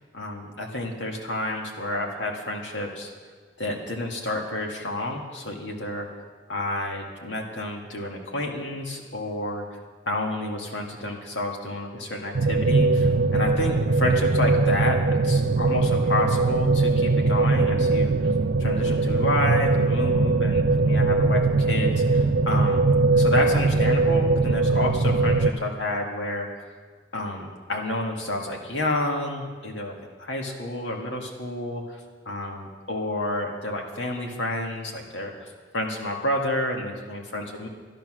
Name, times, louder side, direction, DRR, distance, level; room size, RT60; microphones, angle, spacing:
voice 1, 0.1-3.1 3.6-6.1 6.5-9.7 10.1-15.0 15.2-18.3 18.6-22.9 23.1-26.5 27.1-32.0 32.3-37.7, left 1 dB, 90° left, 1 dB, 2.0 m, -30 dB
sound 1, 12.3-25.5, right 3 dB, 55° right, 0.5 m, -21 dB
12.0 x 11.5 x 6.2 m, 1.5 s
head